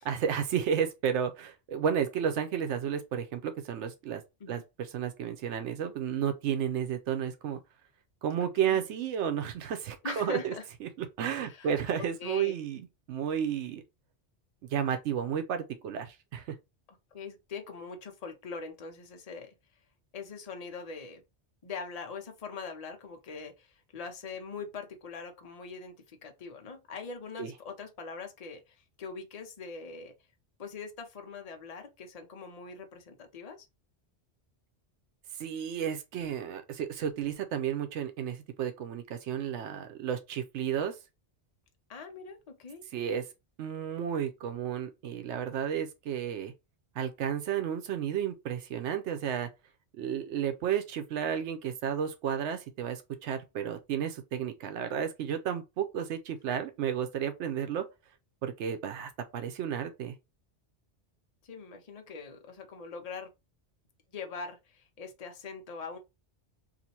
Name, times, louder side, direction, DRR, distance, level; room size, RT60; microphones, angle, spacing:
voice 1, 0.0-4.2 4.5-7.6 8.2-10.5 10.8-13.8 14.7-16.6 27.4-27.5 35.4-41.0 42.9-43.3 43.6-46.5 47.0-49.5 50.0-57.8 58.4-60.1, right 8 dB, 90° right, 0.9 m, -32 dB
voice 2, 10.0-10.6 11.4-11.7 12.2-12.6 17.1-19.5 20.1-21.2 21.6-30.1 30.6-33.7 41.9-42.9 61.4-63.3 64.1-66.0, left 4 dB, 40° left, 0.7 m, -42 dB
2.8 x 2.5 x 4.2 m
omnidirectional pair, 1.2 m